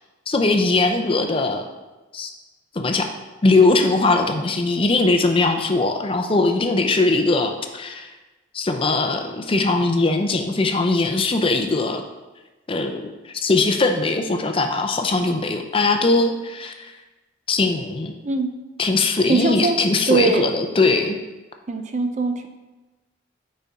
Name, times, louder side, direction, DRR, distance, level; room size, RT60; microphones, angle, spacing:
voice 1, 0.3-1.6 2.1-2.3 2.7-3.1 3.4-8.1 8.5-12.0 12.7-16.9 17.5-18.1 18.8-21.2, left 3 dB, 30° left, 5 dB, 0.5 m, -20 dB
voice 2, 19.3-19.8 20.1-20.4 21.7-22.5, right 3 dB, 35° right, 6 dB, 0.5 m, -21 dB
9.0 x 4.3 x 3.6 m, 1.1 s
head